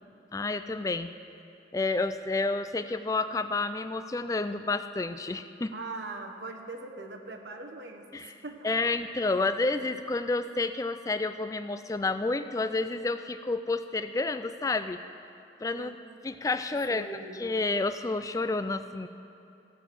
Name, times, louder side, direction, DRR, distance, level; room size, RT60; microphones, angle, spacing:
voice 1, 0.3-1.1 1.7-5.7 8.1-8.3 8.6-15.0 15.6-15.9 16.2-17.1 17.3-19.1, left 3 dB, 20° left, 10 dB, 0.3 m, -30 dB
voice 2, 5.7-8.9 15.7-15.9 16.9-17.4, right 3 dB, 75° right, 3 dB, 1.2 m, -41 dB
15.5 x 7.0 x 6.1 m, 2.7 s
head